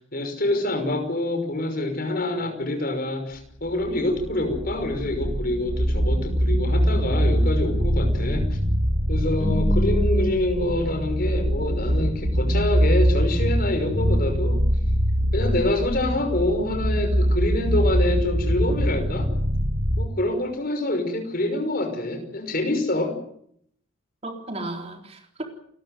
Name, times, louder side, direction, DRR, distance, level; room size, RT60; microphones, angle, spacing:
voice 1, 0.1-8.5 9.1-14.6 15.3-19.3 20.0-23.1, left 1 dB, 45° left, 6 dB, 5.8 m, -26 dB
sound 1, 3.7-20.0, equal, 80° right, 2.9 m, -23 dB
voice 2, 9.4-10.3 24.2-25.4, equal, 30° right, 3 dB, 4.0 m, -31 dB
29.0 x 13.5 x 9.3 m, 0.68 s
head